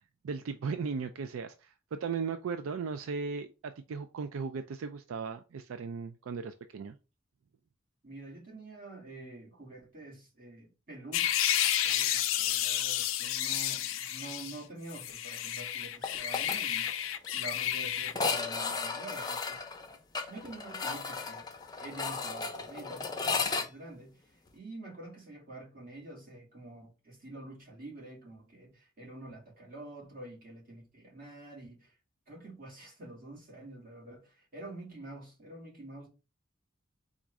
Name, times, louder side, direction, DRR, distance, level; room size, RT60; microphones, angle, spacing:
voice 1, 0.2-7.0, right 5 dB, 85° right, 0.4 m, -37 dB
voice 2, 8.0-16.9 17.3-19.6 20.3-21.5 21.8-32.0 32.3-36.1, right 2 dB, 45° right, 2.3 m, -47 dB
sound 1, 11.1-14.6 14.9-18.1, left 11 dB, 80° left, 0.5 m, -31 dB
sound 2, 16.0-16.6 16.9-17.0 17.2-17.3 18.1-23.7, left 4 dB, 20° left, 0.6 m, -34 dB
4.1 x 2.5 x 4.6 m
head